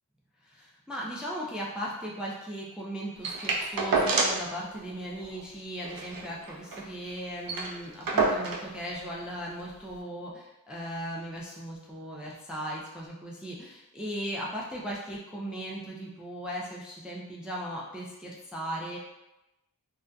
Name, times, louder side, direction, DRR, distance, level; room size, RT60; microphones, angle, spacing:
voice 1, 0.4-19.0, equal, ahead, -4 dB, 0.4 m, -37 dB
sound 1, 3.2-4.5 4.8-4.9 5.2-5.4 5.8-6.9 7.2-7.3 7.5-8.7 9.6-9.7, right 3 dB, 70° right, 0.5 m, -28 dB
2.5 x 2.3 x 2.2 m, 0.97 s
cardioid pair, 55°, 35 cm